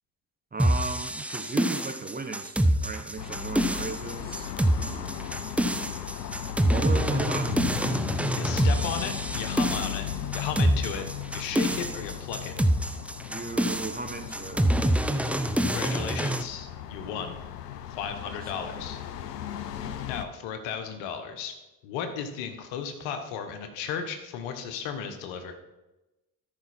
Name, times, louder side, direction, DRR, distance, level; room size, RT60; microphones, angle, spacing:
voice 1, 0.5-4.5 4.8-5.3 6.6-8.0 13.3-14.7 18.5-18.8, right 4 dB, 20° right, 8 dB, 0.9 m, -36 dB
sound 1, 0.6-16.4, right 1 dB, 5° right, 0.6 m, -26 dB
sound 2, 3.2-20.3, left 10 dB, 90° left, 0.6 m, -37 dB
voice 2, 8.4-10.0 10.3-11.0 11.3-12.5 15.6-17.4 18.0-19.0 19.8-21.6 21.8-25.5, left 7 dB, 70° left, 7 dB, 1.3 m, -35 dB
13.5 x 5.7 x 4.3 m, 1.0 s
hypercardioid pair, 50°, 47 cm